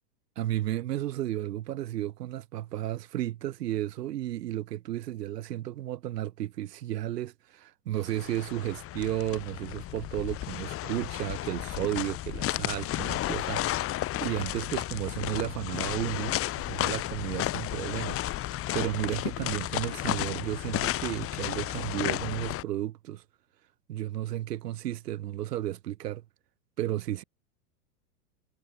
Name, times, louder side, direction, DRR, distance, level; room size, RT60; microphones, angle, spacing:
voice 1, 0.4-23.2 23.9-26.2 26.8-27.2, right 13 dB, 80° right, 1.7 m, -33 dB
sound 1, 8.0-22.6, left 14 dB, 30° left, 2.0 m, -33 dB
supercardioid pair, 135°, 47 cm